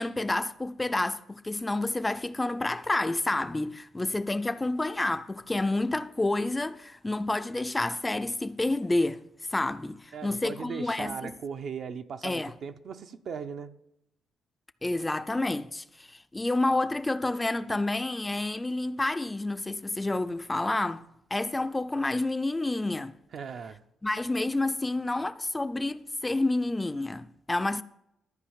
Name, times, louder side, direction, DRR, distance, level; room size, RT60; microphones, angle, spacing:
voice 1, 0.0-9.2 9.5-11.3 12.2-12.5 14.8-21.0 21.3-23.2 24.0-27.8, left 2 dB, 15° left, 0.4 m, -29 dB
voice 2, 10.1-13.7 23.3-23.8, right 6 dB, 60° right, 0.7 m, -38 dB
13.0 x 4.9 x 7.2 m
cardioid pair, 90°, 0 cm